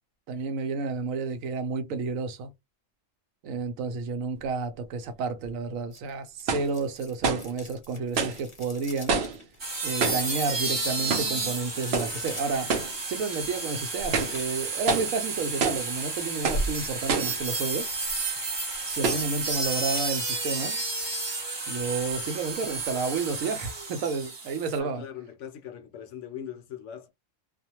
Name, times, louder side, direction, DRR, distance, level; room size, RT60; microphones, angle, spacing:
voice 1, 0.3-2.5 3.4-9.2 9.8-12.7 13.1-17.9 18.8-20.8 21.7-25.0, right 4 dB, 85° right, 1.0 m, -31 dB
sound 1, 5.4-5.5 6.5-6.7 7.2-7.5 8.2-8.4 9.1-9.4 10.0-10.3 11.1-11.4 11.9-12.2 12.7-13.0 13.4-13.5 14.0-14.4 14.9-15.2 15.6-15.9 16.4-16.7 17.1-17.4 18.1-18.2 19.0-19.3, right 4 dB, 60° right, 0.8 m, -27 dB
sound 2, 5.9-13.7 14.3-16.0 17.9-18.4 18.7-19.6 19.9-20.7 21.1-21.2 21.8-21.9 22.2-22.3 22.6-22.7 23.1-23.2, left 3 dB, 30° left, 0.6 m, -48 dB
sound 3, 9.6-24.8, right 3 dB, 35° right, 0.4 m, -32 dB
voice 2, 24.7-27.1, left 9 dB, 70° left, 0.9 m, -40 dB
2.4 x 2.1 x 2.8 m
omnidirectional pair, 1.4 m